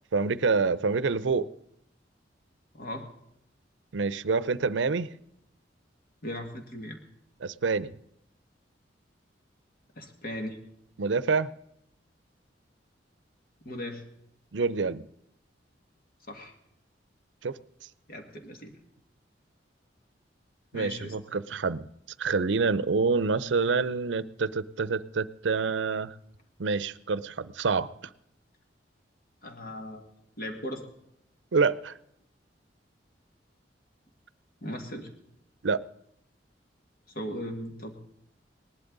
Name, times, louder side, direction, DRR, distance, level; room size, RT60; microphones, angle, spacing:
voice 1, 0.1-1.5 3.9-5.1 7.4-7.9 11.0-11.5 14.5-15.0 17.4-17.6 20.7-21.8 22.2-26.1 26.6-27.9 31.5-31.9 35.6-35.8, right 4 dB, 85° right, 18 dB, 0.6 m, -27 dB
voice 2, 2.7-3.1 6.2-7.0 10.0-10.6 13.6-14.0 16.3-16.5 18.1-18.7 20.7-21.1 29.4-30.0 30.4-30.9 34.6-35.1 37.1-37.9, left 1 dB, 55° left, 4 dB, 2.1 m, -37 dB
19.0 x 11.5 x 3.9 m, 0.76 s
head